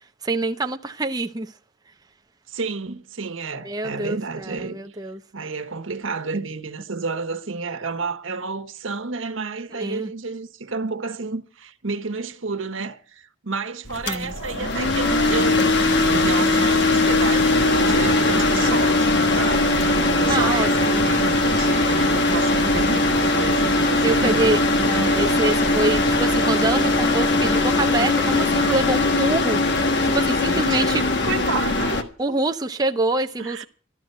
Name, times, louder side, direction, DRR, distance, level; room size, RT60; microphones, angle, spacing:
voice 1, 0.2-1.5 3.6-5.2 9.7-10.1 14.1-14.3 20.3-21.1 24.0-29.6 30.0-31.0 32.2-33.6, right 2 dB, 20° right, 0.6 m, -25 dB
voice 2, 2.5-4.8 5.3-19.7 20.2-24.5 24.8-25.3 30.5-30.9 31.2-32.4 33.4-33.7, right 4 dB, 85° right, 1.3 m, -30 dB
sound 1, 13.8-32.0, left 2 dB, 60° left, 1.5 m, -20 dB
13.0 x 12.5 x 6.7 m
head